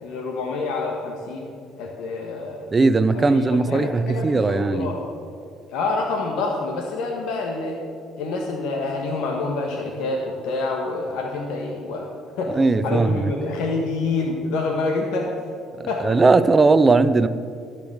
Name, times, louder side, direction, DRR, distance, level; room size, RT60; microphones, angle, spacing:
voice 1, 0.0-2.7 3.1-5.0 5.7-7.8 8.2-12.1 12.4-15.3 15.9-16.2, left 3 dB, 85° left, 1.5 m, -27 dB
voice 2, 2.7-4.9 12.6-13.3 16.0-17.3, right 3 dB, 20° right, 0.5 m, -18 dB
14.5 x 5.2 x 7.9 m
cardioid pair, 125°, 0 cm